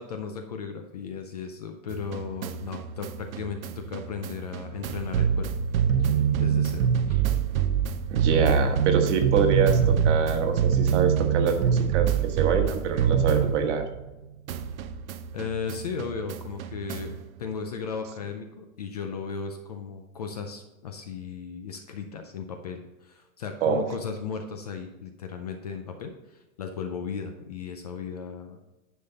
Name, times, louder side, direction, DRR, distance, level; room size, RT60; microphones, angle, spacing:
voice 1, 0.0-5.5 6.0-6.1 6.4-7.4 15.3-28.6, left 6 dB, 30° left, 6 dB, 0.4 m, -36 dB
sound 1, 1.9-14.2 14.5-17.2, right 7 dB, 70° right, 0.7 m, -25 dB
voice 2, 8.1-13.8 23.6-23.8, right 6 dB, 55° right, 5 dB, 1.4 m, -25 dB
10.0 x 5.7 x 4.0 m, 1.1 s
supercardioid pair, 165°, 43 cm